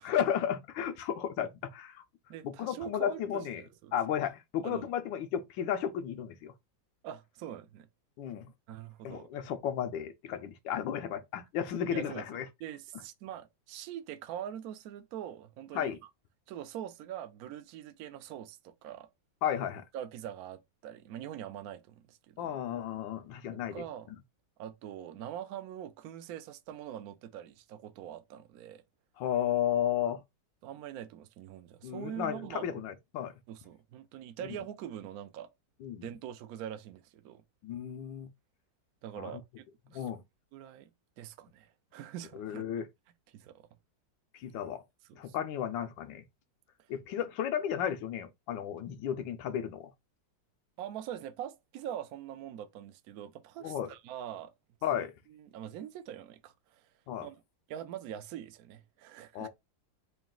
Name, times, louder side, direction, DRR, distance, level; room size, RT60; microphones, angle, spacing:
voice 1, 0.0-2.0 2.4-3.6 3.9-6.5 8.2-8.5 9.0-12.5 15.7-16.0 19.4-19.8 22.4-23.9 29.2-30.2 31.8-33.4 35.8-36.1 37.6-38.3 39.2-39.3 39.9-40.2 42.3-42.9 44.3-44.8 45.2-46.2 46.9-49.9 53.6-53.9 54.8-55.1 57.1-57.3 59.3-59.5, left 9 dB, 85° left, 1.4 m, -33 dB
voice 2, 2.3-3.9 4.6-4.9 7.0-7.9 8.7-9.3 11.9-12.3 12.6-16.0 16.5-19.1 19.9-22.6 23.7-24.1 24.6-28.8 30.6-32.8 33.5-35.5 36.0-37.4 39.0-40.1 40.5-40.9 41.2-42.6 43.3-43.7 45.1-45.4 50.8-54.5 54.9-55.0 55.3-56.9 57.2-57.4 57.7-59.5, right 10 dB, 75° right, 0.9 m, -43 dB
4.0 x 2.3 x 3.7 m
omnidirectional pair, 2.0 m